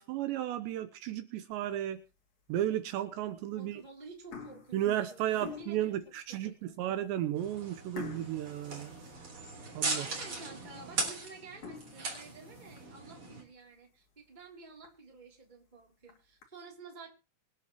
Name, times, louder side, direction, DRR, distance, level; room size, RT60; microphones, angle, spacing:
voice 1, 0.0-2.0 2.5-3.8 4.7-8.9 9.7-10.1, right 12 dB, 75° right, 9 dB, 3.0 m, -34 dB
sound 1, 1.5-2.0 2.6-2.7 3.6-3.8 4.1-6.0 6.6-6.7 7.0-7.2 8.0-9.7 10.1-10.2 10.7-10.8 11.4-13.0 13.5-13.6 14.0-14.1 14.4-14.5 14.8-14.9 15.8-16.4, left 6 dB, 45° left, 3.5 m, -48 dB
voice 2, 3.5-4.8 5.1-6.8 9.9-17.1, right 3 dB, 10° right, 1 dB, 2.6 m, -51 dB
sound 2, 7.4-13.4, right 3 dB, 30° right, 4.2 m, -39 dB
25.5 x 10.0 x 3.1 m, 0.31 s
omnidirectional pair, 5.3 m